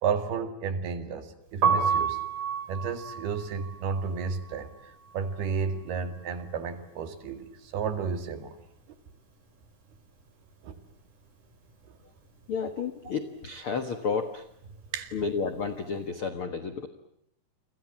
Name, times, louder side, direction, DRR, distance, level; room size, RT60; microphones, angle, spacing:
voice 1, 0.0-2.2 2.7-8.6 10.6-10.7 11.9-12.0 14.9-15.1, right 6 dB, 70° right, 9 dB, 3.9 m, -32 dB
Piano, 1.5-7.4 7.7-9.3 9.5-16.0, right 6 dB, 45° right, 6.8 m, -32 dB
voice 2, 12.5-14.5 15.1-16.9, left 5 dB, 70° left, 9 dB, 1.2 m, -31 dB
29.5 x 24.5 x 7.5 m, 0.70 s
omnidirectional pair, 4.8 m